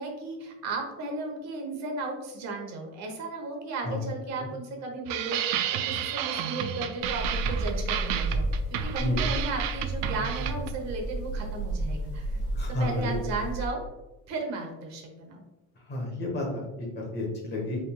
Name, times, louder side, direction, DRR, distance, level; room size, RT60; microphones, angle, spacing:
voice 1, 0.0-12.4 12.8-13.8 14.3-15.4, right 3 dB, 50° right, 2 dB, 1.1 m, -35 dB
sound 1, 5.1-10.8, right 9 dB, 85° right, 0.5 m, -31 dB
sound 2, 7.0-13.7, right 2 dB, 65° left, 1.2 m, -32 dB
voice 2, 12.5-13.2 15.9-17.9, left 1 dB, 30° left, 0 dB, 1.3 m, -31 dB
5.3 x 3.6 x 2.4 m, 1.0 s
cardioid pair, 165°, 34 cm